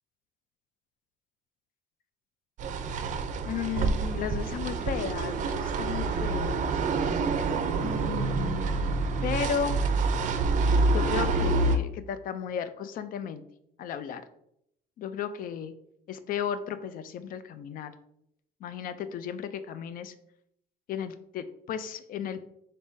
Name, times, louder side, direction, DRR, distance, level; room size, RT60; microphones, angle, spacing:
sound 1, 2.6-11.8, right 3 dB, 50° right, 0.4 m, -27 dB
voice 1, 3.4-6.9 7.8-9.8 10.9-13.4 13.8-14.2 15.0-15.7 16.1-17.9 18.6-20.1 20.9-22.4, left 8 dB, 55° left, 12 dB, 0.4 m, -34 dB
4.1 x 3.5 x 2.6 m, 0.75 s
cardioid pair, 110°, 17 cm